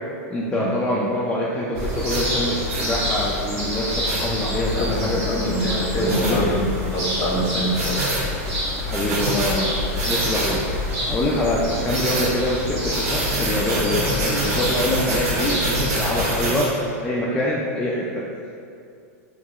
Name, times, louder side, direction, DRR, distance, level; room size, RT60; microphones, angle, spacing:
voice 1, 0.3-6.4 8.8-9.7 10.1-10.6 11.1-16.7 17.0-18.2, left 1 dB, 10° left, -5 dB, 0.3 m, -25 dB
sound 1, 1.7-16.4, left 1 dB, 55° right, 1.1 m, -27 dB
sound 2, 2.1-2.2 2.7-2.9 4.0-4.2 6.1-6.4 7.7-8.2 8.9-9.6 10.0-10.6 11.9-12.3 12.9-16.7, right 2 dB, 80° right, 0.8 m, -26 dB
voice 2, 4.7-6.6 6.9-7.9, equal, 35° left, -4 dB, 0.9 m, -25 dB
3.7 x 2.8 x 2.4 m, 2.4 s
supercardioid pair, 130°, 8 cm